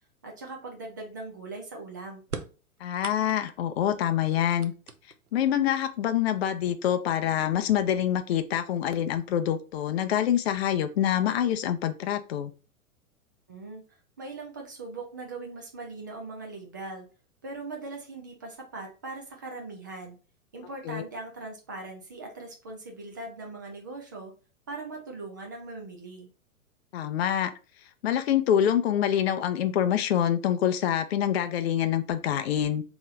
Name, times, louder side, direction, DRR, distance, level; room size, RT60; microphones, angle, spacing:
voice 1, 0.2-2.2 13.5-13.8 14.2-17.1 17.4-20.2 20.5-24.3 24.7-26.3, right 3 dB, 15° right, 1 dB, 0.3 m, -40 dB
sound 1, 2.2-3.7 4.2-5.4 6.4-6.5 7.5-7.6 8.1-8.6, right 5 dB, 90° right, 0.6 m, -41 dB
voice 2, 2.8-4.7 5.3-12.5 20.9-21.0 26.9-27.5 28.0-32.8, left 10 dB, 45° left, 9 dB, 0.5 m, -26 dB
3.6 x 3.0 x 3.7 m, 0.35 s
figure-of-eight pair, 105°, 43 cm